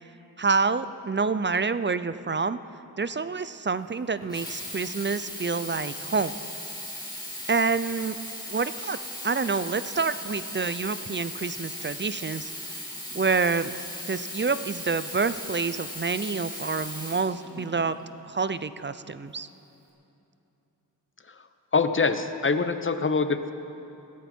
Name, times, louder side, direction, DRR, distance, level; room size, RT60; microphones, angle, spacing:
voice 1, 0.4-2.6 3.0-6.3 7.5-8.2 8.5-9.0 9.2-12.5 13.1-13.7 14.1-18.0 18.2-19.5, right 4 dB, 25° right, 14 dB, 0.5 m, -27 dB
Sink (filling or washing), 4.2-18.0 18.7-18.8, left 1 dB, 10° left, 4.6 m, -38 dB
voice 2, 21.7-23.5, left 4 dB, 30° left, 10 dB, 0.9 m, -24 dB
20.5 x 15.0 x 4.4 m, 2.9 s
cardioid pair, 55°, 42 cm